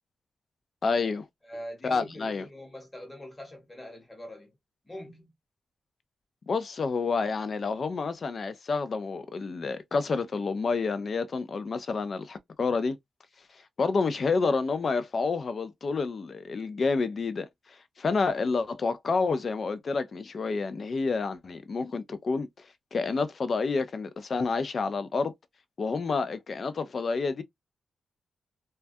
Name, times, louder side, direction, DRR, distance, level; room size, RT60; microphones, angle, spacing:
voice 1, 0.8-1.2 1.8-2.5 6.5-13.0 13.8-25.3 25.8-27.4, left 4 dB, 45° left, 0.3 m, -29 dB
voice 2, 1.4-4.5 4.8-5.3, equal, 15° left, 1.0 m, -43 dB
2.2 x 2.2 x 2.5 m
wide cardioid pair, 130°, 0 cm